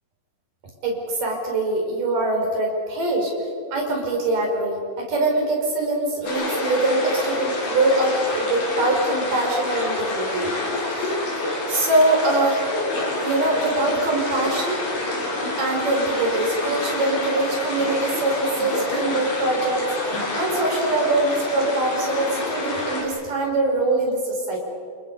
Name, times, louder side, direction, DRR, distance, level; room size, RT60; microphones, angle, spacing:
voice 1, 0.8-3.3 3.7-10.5 11.0-11.1 11.7-12.6 13.2-14.8 15.6-24.6, right 2 dB, 55° right, 0 dB, 6.3 m, -23 dB
sound 1, 6.2-23.0, left 2 dB, 60° left, 6.6 m, -27 dB
29.0 x 29.0 x 5.3 m, 2.3 s
omnidirectional pair, 4.5 m